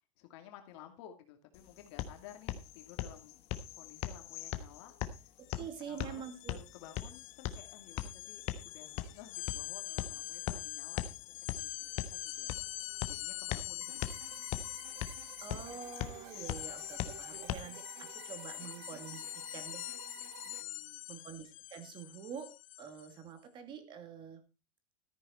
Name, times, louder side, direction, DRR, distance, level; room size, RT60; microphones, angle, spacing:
voice 1, 0.2-3.4 3.7-12.5 13.1-14.5 20.4-21.0, left 11 dB, 55° left, 5 dB, 2.5 m, -55 dB
sound 1, 1.5-17.5, left 12 dB, 35° left, 1.2 m, -41 dB
voice 2, 5.4-6.6 15.4-19.9 21.1-22.5 22.8-24.4, right 7 dB, 30° right, 9 dB, 2.2 m, -46 dB
sound 2, 5.5-5.6 5.9-23.2, left 16 dB, 75° left, 0.6 m, -45 dB
sound 3, 13.8-20.6, right 12 dB, 55° right, 1.3 m, -53 dB
14.0 x 8.8 x 4.3 m, 0.29 s
supercardioid pair, 155°, 17 cm